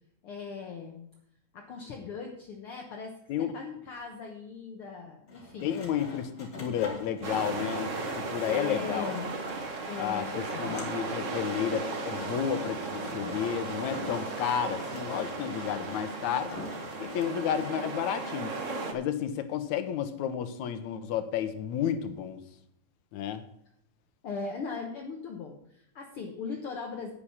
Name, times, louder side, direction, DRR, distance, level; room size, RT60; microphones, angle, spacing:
voice 1, 0.2-1.0 1.5-5.8 8.4-9.3 9.9-11.1 24.2-27.1, left 5 dB, 55° left, 1 dB, 1.8 m, -39 dB
Sawing, 5.3-17.7, left 2 dB, 35° left, 3.2 m, -47 dB
voice 2, 5.6-9.2 10.0-16.5 17.0-18.5 18.9-22.4 23.1-23.4, left 9 dB, 80° left, 10 dB, 2.3 m, -32 dB
sound 1, 7.2-18.9, right 3 dB, 55° right, 0.8 m, -36 dB
10.0 x 8.6 x 5.7 m, 0.75 s
omnidirectional pair, 3.4 m